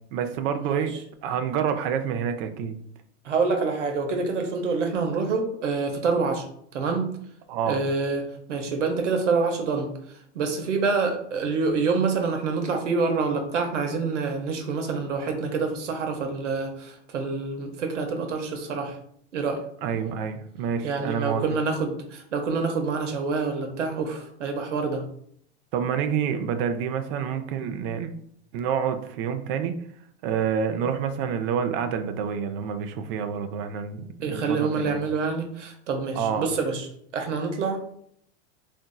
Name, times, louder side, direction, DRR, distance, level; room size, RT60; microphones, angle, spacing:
voice 1, 0.1-1.0 1.2-2.8 7.5-7.8 19.8-21.4 25.7-28.1 28.5-29.7 30.2-35.0 36.2-36.5, right 7 dB, 55° right, 8 dB, 0.5 m, -28 dB
voice 2, 3.2-6.4 6.7-7.1 7.7-9.9 10.3-19.0 19.3-19.6 20.8-25.0 34.2-36.9 37.1-37.9, right 4 dB, 90° right, 4 dB, 0.8 m, -27 dB
3.6 x 2.6 x 2.2 m, 0.66 s
hypercardioid pair, 105°, 35 cm